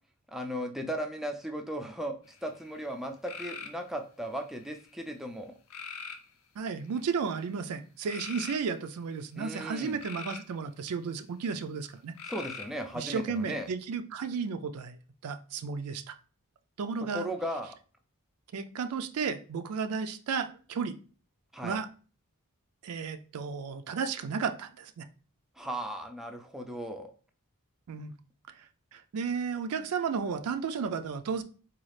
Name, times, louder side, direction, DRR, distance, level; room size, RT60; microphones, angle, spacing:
voice 1, 0.3-5.5 9.4-10.0 12.3-13.7 17.1-17.8 21.5-21.8 25.6-27.1, equal, ahead, 3 dB, 0.3 m, -36 dB
sound 1, 2.3-2.7 3.3-3.8 4.5-5.0 5.7-6.2 6.9-7.3 8.0-8.6 9.7-10.5 12.2-12.8, left 5 dB, 70° left, 0.5 m, -42 dB
voice 2, 6.6-12.1 12.9-15.0 15.2-16.2 16.8-17.3 18.5-21.0 21.6-21.9 22.8-25.1 27.9-28.1 28.5-28.6 28.9-31.4, right 5 dB, 80° right, 9 dB, 0.4 m, -33 dB
4.0 x 2.4 x 3.1 m, 0.38 s
head